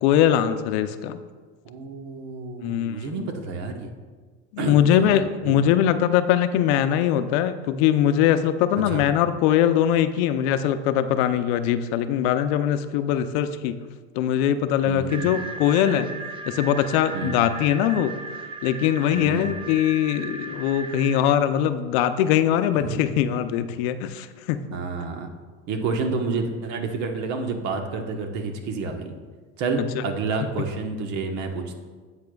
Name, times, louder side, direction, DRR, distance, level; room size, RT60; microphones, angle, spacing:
voice 1, 0.0-1.2 2.6-3.3 4.5-13.8 14.2-16.1 16.5-18.1 18.6-24.6, left 10 dB, 70° left, 10 dB, 0.6 m, -22 dB
voice 2, 1.6-3.9 4.6-5.1 5.4-5.6 8.9-9.0 14.8-15.4 17.1-17.6 19.1-19.5 22.7-23.0 24.7-25.3 25.7-29.1 29.6-31.7, right 4 dB, 55° right, 4 dB, 1.3 m, -29 dB
sound 1, 15.1-21.2, right 3 dB, 15° right, 0.5 m, -36 dB
10.5 x 8.3 x 2.3 m, 1.4 s
supercardioid pair, 120°, 34 cm